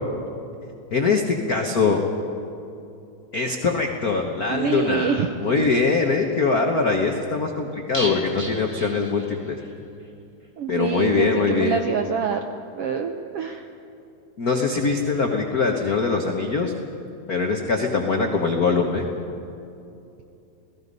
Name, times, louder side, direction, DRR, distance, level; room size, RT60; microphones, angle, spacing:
voice 1, 0.9-2.0 3.3-9.6 10.7-11.8 14.4-16.7 17.3-19.1, left 4 dB, 85° left, 2 dB, 0.8 m, -22 dB
voice 2, 4.5-5.3 10.6-12.4 12.7-13.7, right 6 dB, 75° right, 5 dB, 1.3 m, -25 dB
sound 1, 7.9-9.7 10.0-10.1 10.4-10.5, right 1 dB, 20° right, 0.8 m, -34 dB
29.0 x 18.5 x 5.4 m, 2.7 s
omnidirectional pair, 3.7 m